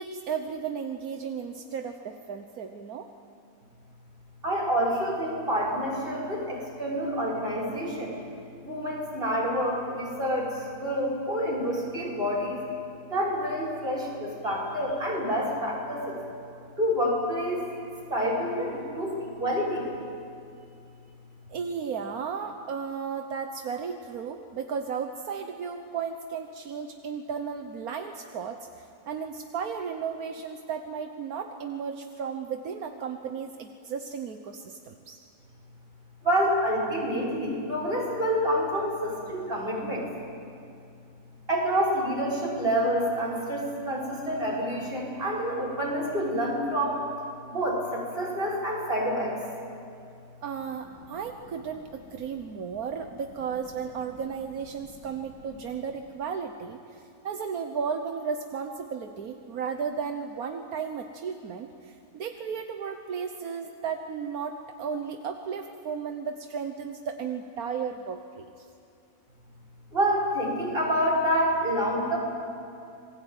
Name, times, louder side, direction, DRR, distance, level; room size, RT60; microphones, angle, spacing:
voice 1, 0.0-3.1 21.5-35.2 50.4-68.7, right 6 dB, 80° right, 5 dB, 1.6 m, -34 dB
voice 2, 4.4-8.2 8.6-12.6 13.1-16.2 16.8-17.6 18.1-19.9 36.2-40.1 41.5-47.0 47.5-49.3 69.9-72.2, equal, 40° right, -2 dB, 6.2 m, -28 dB
27.5 x 21.0 x 9.1 m, 2.5 s
omnidirectional pair, 1.5 m